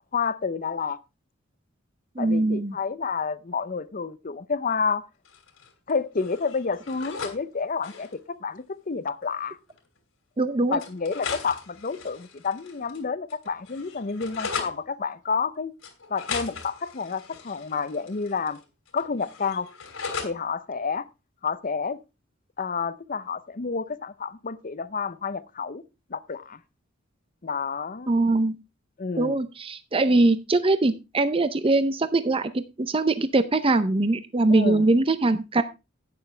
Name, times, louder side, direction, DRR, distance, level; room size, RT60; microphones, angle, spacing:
voice 1, 0.1-1.0 2.2-5.0 5.9-9.6 10.7-15.7 16.1-18.6 18.9-19.7 20.2-21.1 21.4-22.0 22.6-25.8 26.1-26.6 27.4-28.1 29.0-29.4 34.5-34.8, left 5 dB, 40° left, 0.7 m, -29 dB
voice 2, 2.2-2.8 10.4-10.8 28.1-28.6 29.2-35.6, right 2 dB, 25° right, 0.6 m, -22 dB
sound 1, 5.3-5.9 6.2-7.4 7.7-8.2 9.3-9.4 9.7-9.8 10.8-13.0 13.3-14.8 15.8-18.6 18.9-20.4, left 5 dB, 80° left, 2.9 m, -37 dB
11.5 x 9.0 x 3.3 m
head